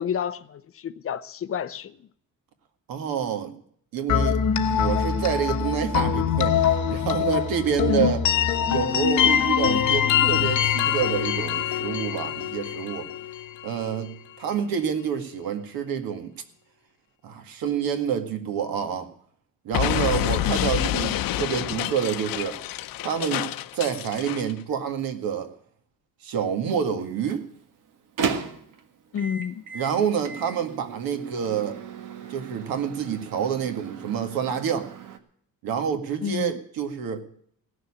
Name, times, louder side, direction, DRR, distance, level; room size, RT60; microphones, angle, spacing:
voice 1, 0.0-2.1 7.9-8.1 20.5-20.7 29.1-29.6 34.1-34.2 36.2-36.6, left 8 dB, 40° left, 0.7 m, -30 dB
voice 2, 2.9-3.5 3.9-4.4 4.7-8.2 8.7-13.1 13.6-16.3 17.2-19.1 19.6-22.6 23.0-25.5 26.2-27.4 29.7-31.8 32.3-34.9 35.6-37.2, right 7 dB, 90° right, 2.0 m, -28 dB
sound 1, 4.1-13.9, left 8 dB, 55° left, 1.3 m, -23 dB
Explosion, 19.7-24.5, left 14 dB, 80° left, 0.7 m, -28 dB
Microwave oven, 27.0-35.2, right 6 dB, 65° right, 1.7 m, -36 dB
17.0 x 6.9 x 9.8 m
cardioid pair, 170°, 34 cm